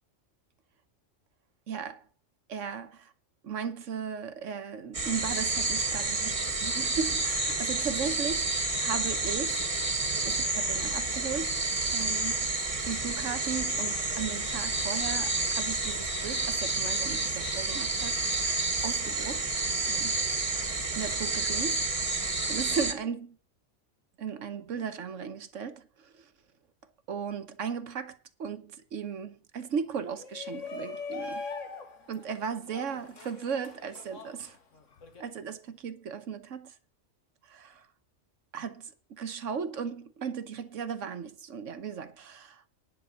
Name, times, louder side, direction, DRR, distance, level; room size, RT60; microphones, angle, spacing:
voice 1, 1.7-2.0 2.5-3.1 3.4-9.7 10.2-11.6 11.9-12.5 12.8-19.5 19.9-21.8 22.5-23.4 24.2-26.3 27.1-31.4 32.1-34.6 35.2-36.7 37.4-37.9 38.5-42.7, right 6 dB, 80° right, 1.3 m, -36 dB
sound 1, 4.9-22.9, right 3 dB, 30° right, 1.5 m, -30 dB
Shout, 30.1-35.2, left 4 dB, 75° left, 1.8 m, -41 dB
10.5 x 6.0 x 8.1 m
omnidirectional pair, 1.3 m